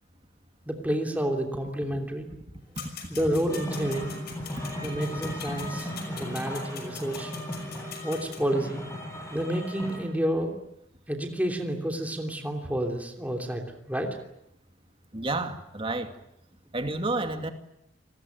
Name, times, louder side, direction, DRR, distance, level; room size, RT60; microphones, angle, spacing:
voice 1, 0.7-2.3 3.1-4.1 4.8-7.3 8.0-8.8 9.3-10.6 11.1-14.2, right 1 dB, 10° right, 3 dB, 3.0 m, -30 dB
sound 1, 2.8-8.4, left 7 dB, 55° left, 5.9 m, -43 dB
sound 2, 3.5-10.0, equal, 15° left, 6.9 m, -36 dB
voice 2, 15.1-16.1 16.7-17.5, right 2 dB, 30° right, 7 dB, 2.3 m, -30 dB
28.0 x 20.0 x 9.3 m, 0.81 s
head